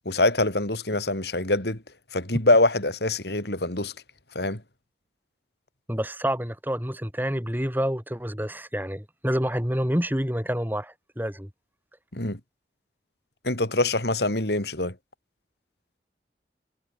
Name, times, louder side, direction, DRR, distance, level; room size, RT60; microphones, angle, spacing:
voice 1, 0.1-1.8 2.1-3.9 4.3-4.6 12.1-12.4 13.4-14.9, left 2 dB, 65° left, 4.2 m, -24 dB
voice 2, 5.9-11.5, equal, 10° right, 3.4 m, -28 dB
head